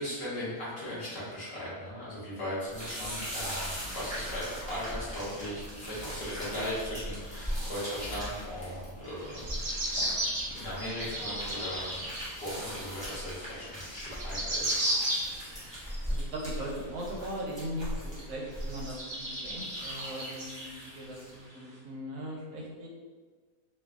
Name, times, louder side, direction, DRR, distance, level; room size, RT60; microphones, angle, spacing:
voice 1, 0.0-9.8 10.5-12.0 12.4-14.8, equal, 50° left, -9 dB, 0.9 m, -38 dB
sound 1, 2.7-21.4, equal, 10° left, 0.3 m, -40 dB
sound 2, 9.2-12.3 12.8-12.9 13.7-13.8 13.9-15.5 15.9-16.8 17.4-17.5 18.0-18.1 18.6-21.0 21.5-21.6, right 1 dB, 40° right, 0.5 m, -34 dB
voice 2, 16.1-22.9, equal, 70° right, -3 dB, 0.9 m, -39 dB
2.6 x 2.4 x 2.3 m, 1.4 s
omnidirectional pair, 1.6 m